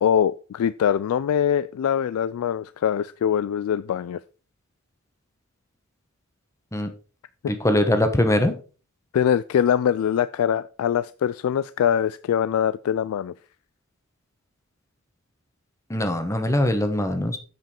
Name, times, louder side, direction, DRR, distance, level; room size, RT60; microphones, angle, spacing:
voice 1, 0.0-4.2 7.4-7.5 9.1-13.3, left 9 dB, 90° left, 15 dB, 0.3 m, -23 dB
voice 2, 7.5-8.5 15.9-17.4, left 1 dB, 15° left, 7 dB, 1.0 m, -22 dB
7.7 x 5.2 x 4.4 m, 0.37 s
head